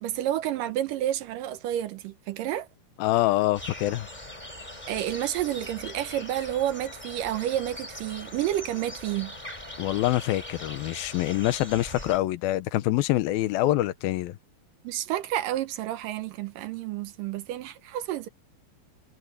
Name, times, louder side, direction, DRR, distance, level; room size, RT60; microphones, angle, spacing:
voice 1, 0.0-2.7 4.9-9.3 14.8-18.3, right 12 dB, 75° right, 2.4 m, -30 dB
voice 2, 3.0-4.1 9.8-14.4, left 16 dB, 85° left, 2.7 m, -25 dB
sound 1, 3.5-12.2, left 1 dB, 10° left, 4.1 m, -41 dB
omnidirectional pair, 4.2 m